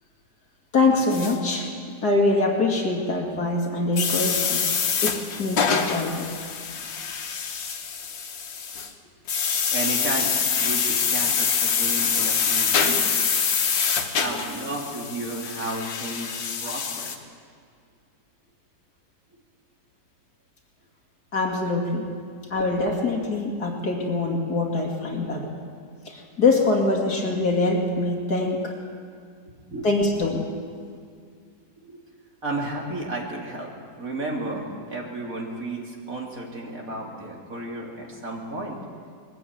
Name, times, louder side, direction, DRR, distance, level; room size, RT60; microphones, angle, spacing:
voice 1, 0.7-1.7 2.0-4.6 5.0-6.3 21.3-22.1 22.5-25.5 26.1-28.7 29.8-30.5, left 3 dB, 60° left, 0 dB, 2.9 m, -24 dB
sound 1, 1.1-1.4 4.0-8.9 9.3-17.2, left 6 dB, 90° left, 2.1 m, -25 dB
voice 2, 9.7-13.1 14.2-17.1 22.4-22.5 29.7-29.9 31.8-32.0 32.4-33.7 34.0-38.8, right 2 dB, 50° right, -1 dB, 3.2 m, -33 dB
21.5 x 15.0 x 8.9 m, 2.1 s
omnidirectional pair, 1.9 m